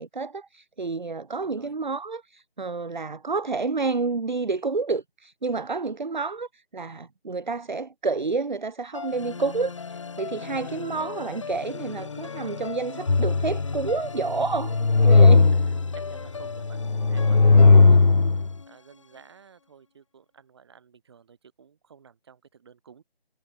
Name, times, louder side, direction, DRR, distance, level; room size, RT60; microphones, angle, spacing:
voice 1, 0.0-14.7 15.0-15.5, right 4 dB, 50° right, 1.7 m, -29 dB
voice 2, 1.4-1.8 10.6-11.2 15.5-16.8 17.1-23.0, right 7 dB, 25° right, 7.9 m, -53 dB
sound 1, 8.9-19.2, left 5 dB, 30° left, 3.7 m, -38 dB
sound 2, 13.1-13.9 14.4-16.0 16.6-18.5, left 3 dB, 45° left, 0.6 m, -17 dB
figure-of-eight pair, 165°, 31 cm